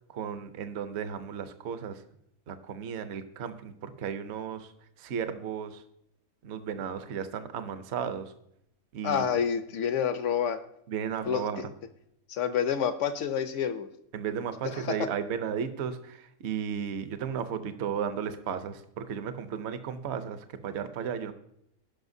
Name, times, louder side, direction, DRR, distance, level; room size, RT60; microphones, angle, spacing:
voice 1, 0.1-2.0 2.5-4.7 5.0-5.8 6.4-8.3 8.9-9.3 10.9-11.7 14.1-21.3, right 7 dB, 55° right, 10 dB, 0.9 m, -34 dB
voice 2, 9.0-10.6 11.3-11.5 12.3-13.9 14.6-15.0, left 8 dB, 65° left, 10 dB, 0.9 m, -28 dB
16.5 x 5.6 x 2.7 m, 0.76 s
omnidirectional pair, 1.5 m